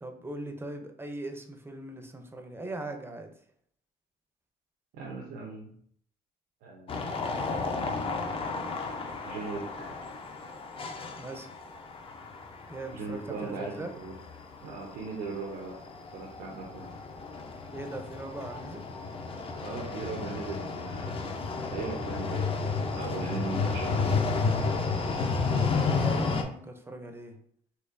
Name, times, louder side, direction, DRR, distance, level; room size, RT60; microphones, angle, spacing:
voice 1, 0.0-3.3 11.2-11.5 12.7-13.9 17.7-18.8 25.5-27.4, right 2 dB, 15° right, 5 dB, 0.5 m, -40 dB
voice 2, 4.9-5.7 6.6-7.1 9.3-9.9 12.9-14.1 14.6-15.8 16.1-16.9 19.6-21.2 21.7-22.5 22.9-24.2, right 3 dB, 90° right, -2 dB, 0.8 m, -38 dB
sound 1, 6.9-26.4, left 4 dB, 35° left, 0.5 m, -32 dB
4.3 x 2.7 x 2.5 m, 0.64 s
cardioid pair, 110°, 17 cm